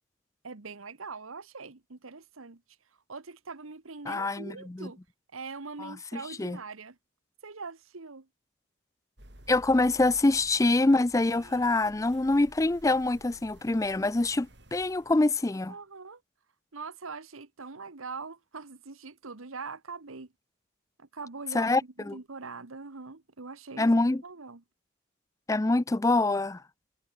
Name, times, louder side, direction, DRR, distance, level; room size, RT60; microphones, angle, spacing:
voice 1, 0.4-2.6 3.1-5.0 5.3-7.0 7.4-8.3 15.7-16.2 16.7-20.3 21.0-21.7 22.0-23.9 24.2-24.6, right 4 dB, 85° right, 1.3 m, -42 dB
voice 2, 4.1-4.9 5.8-6.6 9.5-15.7 21.5-22.2 23.8-24.2 25.5-26.6, left 2 dB, 15° left, 0.4 m, -25 dB
sound 1, 9.2-15.4, right 1 dB, 55° right, 7.3 m, -53 dB
head